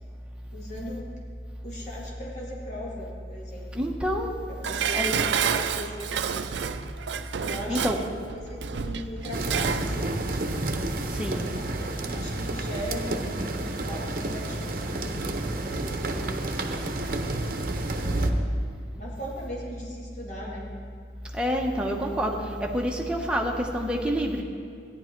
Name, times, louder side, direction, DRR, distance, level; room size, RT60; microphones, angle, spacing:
voice 1, 0.5-1.1 1.6-3.7 4.5-6.5 7.3-10.3 10.6-11.1 11.5-16.6 17.6-18.5 19.0-20.7, equal, 45° left, -4 dB, 2.3 m, -39 dB
voice 2, 3.7-4.4 4.9-5.2 7.7-8.0 11.1-11.5 21.3-24.4, equal, 5° right, 0 dB, 1.1 m, -27 dB
Dishes pots and pans, 4.6-9.9 10.3-10.4, right 7 dB, 90° right, 0.5 m, -29 dB
sound 1, 9.3-18.3, right 2 dB, 50° right, 0.8 m, -30 dB
14.5 x 10.5 x 4.6 m, 2.3 s
head